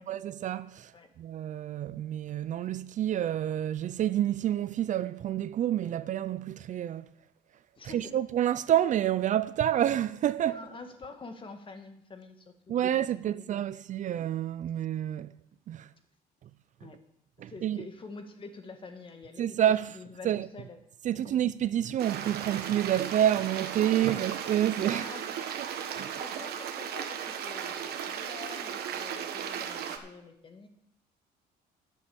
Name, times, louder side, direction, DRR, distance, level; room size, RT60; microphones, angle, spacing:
voice 1, 0.1-0.9 1.2-7.1 7.8-10.6 12.7-15.3 15.7-15.9 17.4-17.8 19.4-20.0 20.2-20.5 21.0-25.0 25.6-25.7 25.9-26.2, right 11 dB, 45° right, 0.4 m, -28 dB
voice 2, 7.8-8.1 10.5-13.6 16.8-17.0 17.5-19.5 19.9-20.8 21.1-21.4 23.9-24.3 24.8-25.4 26.2-30.7, left 4 dB, 30° left, 1.6 m, -47 dB
Stream, 22.0-30.0, right 8 dB, 70° right, 1.3 m, -36 dB
11.0 x 6.6 x 7.0 m
cardioid pair, 110°, 17 cm